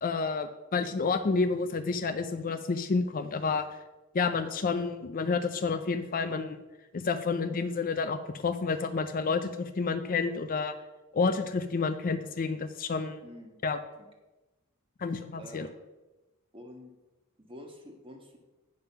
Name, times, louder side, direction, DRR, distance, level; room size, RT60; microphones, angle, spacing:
voice 1, 0.0-3.6 4.1-6.6 6.9-10.7 11.1-13.2 13.6-13.8 15.0-15.7, left 4 dB, 40° left, 9 dB, 0.5 m, -29 dB
voice 2, 13.2-13.6 14.0-14.1 15.4-15.7 16.5-16.9 17.4-18.4, left 1 dB, 25° right, 2 dB, 1.4 m, -47 dB
9.1 x 5.4 x 5.7 m, 1.1 s
head